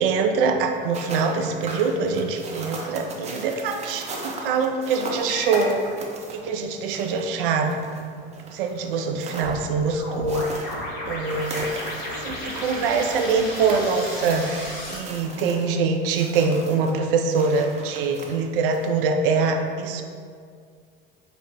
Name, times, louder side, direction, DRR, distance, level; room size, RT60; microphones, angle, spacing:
voice 1, 0.0-5.9 6.3-7.8 8.5-10.7 11.1-11.7 12.2-20.0, right 4 dB, 65° right, 4 dB, 0.4 m, -24 dB
sound 1, 0.7-19.0, right 2 dB, 20° right, 0.6 m, -39 dB
sound 2, 5.3-5.7 9.4-15.0, left 1 dB, 60° left, 1.1 m, -33 dB
5.3 x 2.0 x 2.8 m, 2.1 s
figure-of-eight pair, 70°, 29 cm